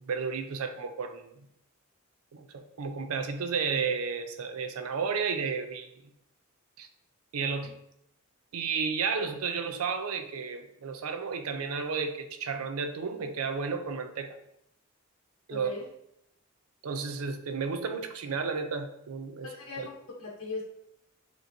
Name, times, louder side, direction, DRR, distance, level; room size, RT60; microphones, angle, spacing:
voice 1, 0.1-1.5 2.3-5.9 6.8-6.9 7.3-7.7 8.5-14.4 15.5-15.7 16.8-19.5 19.8-19.9, right 5 dB, 85° right, 8 dB, 0.5 m, -32 dB
voice 2, 15.5-15.9 19.4-20.6, left 3 dB, 75° left, -5 dB, 0.8 m, -39 dB
6.6 x 3.0 x 2.6 m, 0.78 s
head